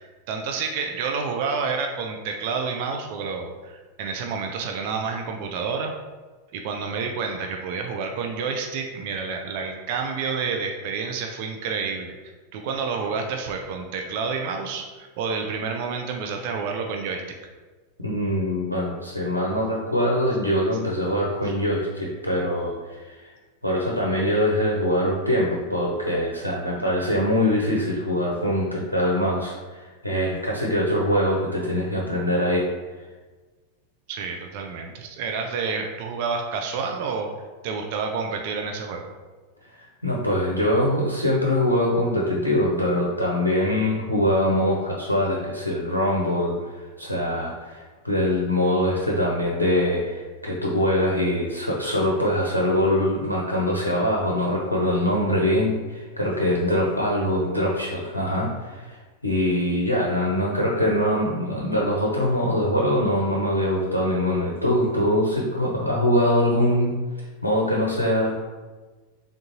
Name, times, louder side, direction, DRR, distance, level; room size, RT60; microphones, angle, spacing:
voice 1, 0.0-5.9 6.5-12.2 12.5-17.2 34.1-37.3 37.6-39.0, right 5 dB, 50° right, 3 dB, 0.4 m, -29 dB
voice 2, 18.0-23.3 23.6-32.6 32.9-33.0 39.7-68.4, left 1 dB, 85° left, -3 dB, 0.6 m, -23 dB
3.8 x 3.5 x 2.7 m, 1.3 s
figure-of-eight pair, 90°, 0 cm